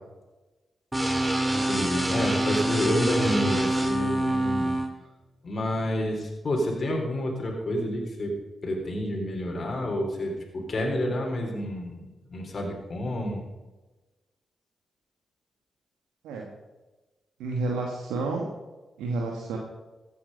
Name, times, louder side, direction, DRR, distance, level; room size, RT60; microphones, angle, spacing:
sound 1, 0.9-4.9, right 1 dB, 10° right, 2.3 m, -26 dB
voice 1, 1.7-4.8 5.4-8.4 8.6-13.4, left 1 dB, 55° left, 0 dB, 3.7 m, -29 dB
voice 2, 17.4-18.5 19.0-19.6, right 3 dB, 85° right, 0 dB, 1.5 m, -30 dB
15.0 x 8.6 x 5.4 m, 1.2 s
supercardioid pair, 45°, 0 cm